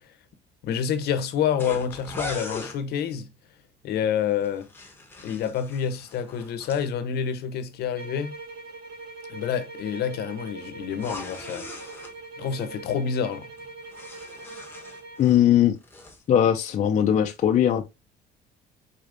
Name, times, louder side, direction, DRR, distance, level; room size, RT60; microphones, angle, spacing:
voice 1, 0.6-3.3 3.8-4.7 5.2-8.3 9.3-11.8 12.4-13.5, left 8 dB, 70° left, 0.9 m, -28 dB
sound 1, 1.6-2.8 4.4-6.8 10.9-12.1 13.6-15.5 15.8-16.2, left 2 dB, 15° left, 1.3 m, -40 dB
sound 2, 8.0-15.3, right 3 dB, 60° right, 2.8 m, -42 dB
voice 2, 15.2-15.8 16.3-17.8, left 10 dB, 45° left, 0.6 m, -20 dB
4.9 x 4.2 x 2.6 m
cardioid pair, 110°, 17 cm